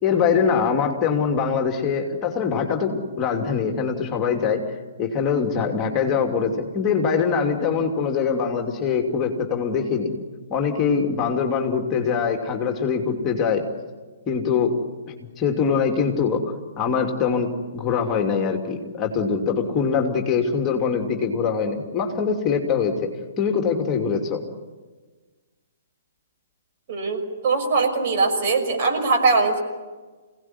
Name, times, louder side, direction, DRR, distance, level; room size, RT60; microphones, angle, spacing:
voice 1, 0.0-10.1 10.5-13.6 14.3-14.7 15.4-23.1 23.4-24.4, left 6 dB, 20° left, 2 dB, 2.9 m, -23 dB
voice 2, 26.9-29.6, right 4 dB, 45° right, 3 dB, 6.0 m, -21 dB
27.5 x 18.0 x 9.8 m, 1.4 s
figure-of-eight pair, 120°, 0 cm